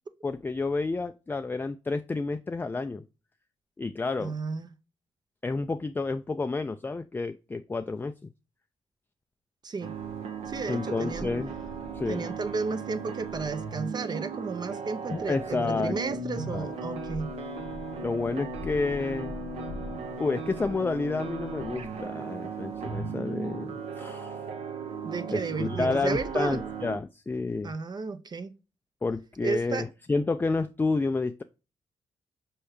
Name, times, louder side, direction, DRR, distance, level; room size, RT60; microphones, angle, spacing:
voice 1, 0.2-3.0 3.8-4.3 5.4-8.1 10.7-11.5 11.9-12.3 15.1-16.0 16.5-16.7 18.0-19.3 20.2-24.4 25.3-27.7 29.0-31.4, left 3 dB, 20° left, 0.3 m, -30 dB
voice 2, 4.2-4.7 9.6-9.9 10.5-11.3 12.1-17.3 25.0-26.6 27.6-28.5 29.4-29.9, right 4 dB, 40° right, 0.5 m, -33 dB
sound 1, 9.8-27.0, right 4 dB, 75° right, 0.9 m, -36 dB
4.7 x 3.2 x 3.0 m
supercardioid pair, 55°, 11 cm